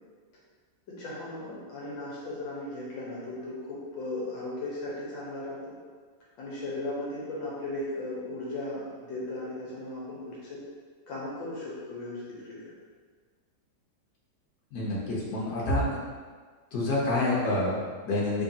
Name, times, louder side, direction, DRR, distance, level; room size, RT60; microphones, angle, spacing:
voice 1, 0.9-5.8 6.4-10.6 11.1-12.7, left 2 dB, 75° left, -6 dB, 1.6 m, -36 dB
voice 2, 14.7-16.0 16.7-18.4, left 2 dB, 60° left, -6 dB, 1.4 m, -28 dB
3.6 x 3.6 x 2.7 m, 1.5 s
omnidirectional pair, 2.1 m